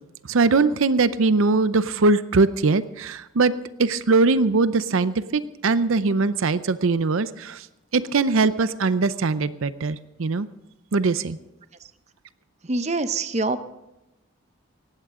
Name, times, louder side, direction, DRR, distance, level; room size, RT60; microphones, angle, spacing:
voice 1, 0.3-3.5 3.8-7.7 7.9-10.5 10.9-11.4, right 3 dB, 70° right, 14 dB, 0.6 m, -21 dB
voice 2, 12.6-13.6, right 3 dB, 30° right, 11 dB, 0.6 m, -25 dB
18.5 x 15.5 x 3.7 m, 0.93 s
head